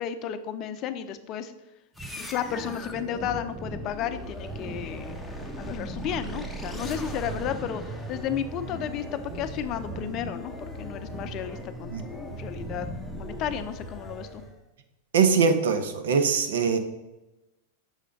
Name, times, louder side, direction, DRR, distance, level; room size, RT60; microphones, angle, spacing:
voice 1, 0.0-1.5 2.2-5.2 5.6-7.8 8.1-10.5 10.8-14.4, left 9 dB, 40° left, 10 dB, 0.5 m, -33 dB
sound 1, 1.9-14.6, right 1 dB, 5° left, 0.8 m, -37 dB
voice 2, 15.1-16.8, right 5 dB, 75° right, 8 dB, 0.8 m, -22 dB
6.4 x 3.4 x 5.1 m, 0.99 s
hypercardioid pair, 115°, 0 cm